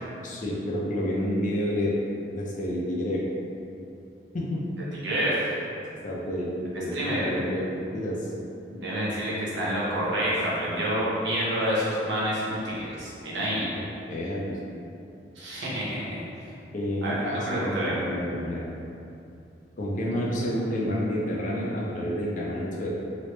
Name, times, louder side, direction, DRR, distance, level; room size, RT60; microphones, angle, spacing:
voice 1, 0.2-1.9 2.3-3.2 4.3-4.6 6.0-7.7 7.9-8.3 14.1-14.6 16.7-18.7 19.8-22.9, equal, 45° left, -4 dB, 0.5 m, -29 dB
voice 2, 5.0-5.5 6.9-7.3 8.7-13.7 15.3-16.2 17.0-17.9, equal, 70° right, -7 dB, 0.9 m, -28 dB
3.1 x 2.9 x 3.1 m, 2.7 s
head